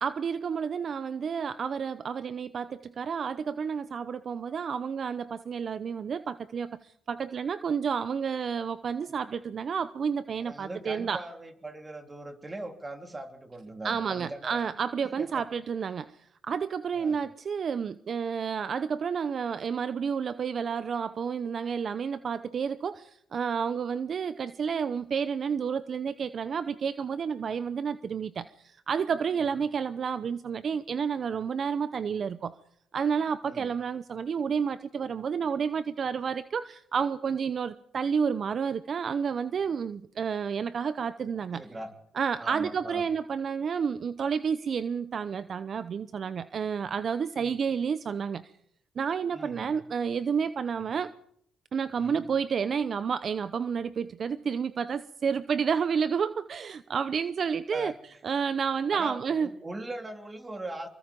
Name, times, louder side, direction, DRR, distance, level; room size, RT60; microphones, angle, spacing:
voice 1, 0.0-11.2 13.8-32.6 32.9-41.6 42.1-48.4 49.0-51.1 51.7-57.9 58.2-59.5, right 6 dB, 50° right, 0.8 m, -30 dB
voice 2, 10.4-14.6 15.2-15.4 16.9-17.2 33.4-33.7 41.5-42.0 42.4-43.0 47.4-47.6 49.3-49.7 50.8-50.9 52.0-52.3 57.7-57.9 58.9-60.9, right 2 dB, 20° right, 3.2 m, -40 dB
25.0 x 23.0 x 5.3 m
cardioid pair, 90°, 0 cm